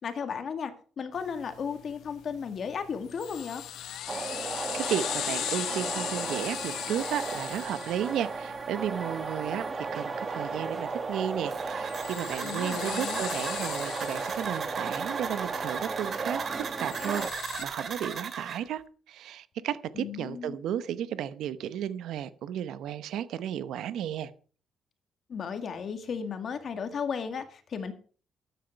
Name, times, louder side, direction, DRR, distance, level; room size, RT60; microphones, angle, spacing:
voice 1, 0.0-3.6 12.4-13.2 20.0-20.6 25.3-27.9, left 6 dB, 55° left, 2.0 m, -35 dB
sound 1, 1.1-17.6, left 10 dB, 80° left, 1.1 m, -39 dB
sound 2, 4.1-17.3, right 4 dB, 35° right, 1.4 m, -35 dB
voice 2, 4.7-16.4 16.8-24.3, right 10 dB, 80° right, 0.8 m, -34 dB
sound 3, 11.5-18.6, right 6 dB, 50° right, 2.1 m, -37 dB
13.5 x 9.2 x 4.6 m
cardioid pair, 90°, 0 cm